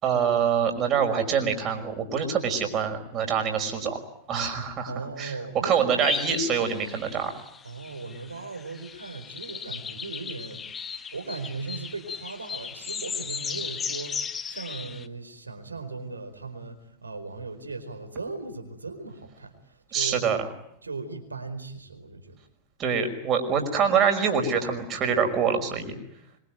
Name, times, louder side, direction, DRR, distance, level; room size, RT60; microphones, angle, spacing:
voice 1, 0.0-4.0 4.3-5.3 5.6-7.3 19.9-20.5 22.8-26.0, right 6 dB, 30° right, 5 dB, 5.8 m, -25 dB
voice 2, 4.9-6.1 7.6-10.9 11.1-20.2 20.8-22.4, right 3 dB, 80° right, 7 dB, 4.6 m, -38 dB
sound 1, 6.0-15.1, left 6 dB, 20° left, 1.2 m, -36 dB
25.0 x 24.5 x 9.3 m, 0.74 s
figure-of-eight pair, 90°, 0 cm